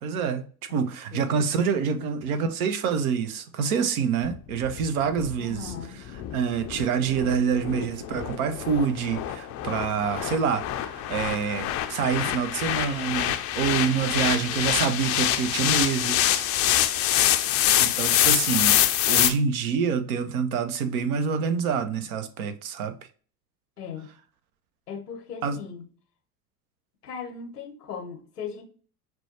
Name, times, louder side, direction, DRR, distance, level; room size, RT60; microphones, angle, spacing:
voice 1, 0.0-5.7 6.3-16.5 17.8-18.8 19.1-22.9 25.4-25.6, right 6 dB, 70° right, 0.7 m, -27 dB
voice 2, 0.7-1.4 1.7-2.1 5.4-6.0 23.8-24.1 24.9-25.9 27.0-28.6, left 6 dB, 90° left, 0.8 m, -38 dB
sound 1, 4.2-19.3, left 12 dB, 35° left, 0.4 m, -25 dB
6.0 x 2.2 x 2.8 m
figure-of-eight pair, 70°, 46 cm